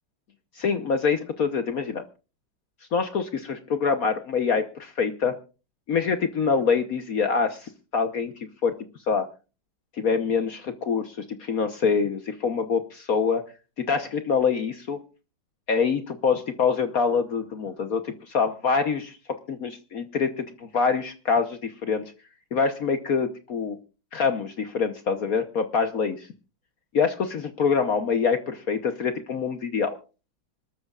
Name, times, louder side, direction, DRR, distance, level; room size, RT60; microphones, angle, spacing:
voice 1, 0.5-2.0 2.9-5.4 5.9-8.3 8.6-8.8 9.1-9.3 9.9-13.4 13.8-15.0 15.7-22.1 22.5-23.8 24.1-26.2 26.9-30.0, left 5 dB, 55° left, 7 dB, 1.3 m, -25 dB
25.5 x 13.5 x 2.4 m, 0.34 s
omnidirectional pair, 1.9 m